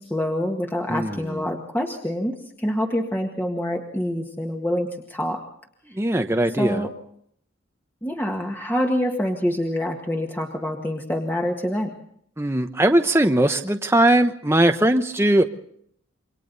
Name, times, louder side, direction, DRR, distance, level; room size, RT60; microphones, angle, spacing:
voice 1, 0.0-5.4 6.6-6.9 8.0-11.9, equal, 10° left, 1 dB, 1.8 m, -26 dB
voice 2, 0.9-1.4 5.9-6.9 12.4-15.4, right 1 dB, 15° right, 6 dB, 1.0 m, -20 dB
28.0 x 24.0 x 4.1 m, 0.65 s
head